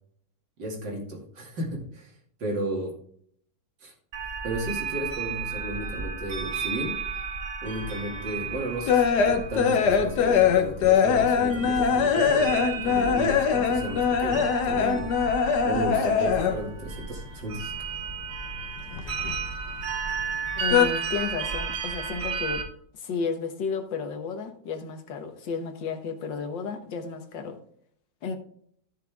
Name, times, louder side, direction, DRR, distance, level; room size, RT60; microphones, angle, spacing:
voice 1, 0.6-2.1 2.4-3.0 3.8-3.9 4.4-7.0 7.6-15.1 15.6-17.7, right 1 dB, 80° right, 3.2 m, -34 dB
sound 1, 4.1-22.6, right 5 dB, 60° right, 2.0 m, -34 dB
sound 2, 8.0-16.8 17.0-18.2 18.5-19.9 20.2-20.9, left 7 dB, 70° left, 1.5 m, -22 dB
voice 2, 20.6-22.6 23.0-27.6 28.2-28.4, left 5 dB, 85° left, 2.0 m, -32 dB
13.5 x 6.7 x 3.5 m
omnidirectional pair, 1.9 m